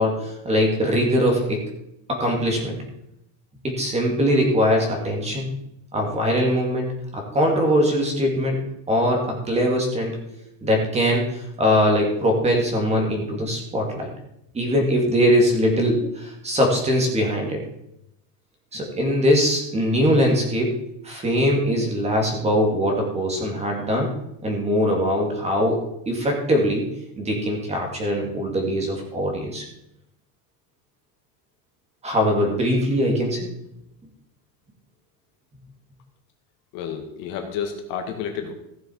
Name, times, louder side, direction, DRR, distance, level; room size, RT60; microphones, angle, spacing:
voice 1, 0.0-1.6 2.1-2.8 3.6-5.5 5.9-6.9 7.1-8.6 8.9-10.2 10.6-14.1 14.5-17.6 18.7-20.7 21.0-24.1 24.4-26.9 27.2-29.6 32.0-33.5, equal, 15° right, 1 dB, 2.3 m, -21 dB
voice 2, 36.7-38.5, left 7 dB, 50° left, 4 dB, 1.9 m, -30 dB
15.5 x 6.9 x 4.6 m, 0.80 s
cardioid pair, 170°, 43 cm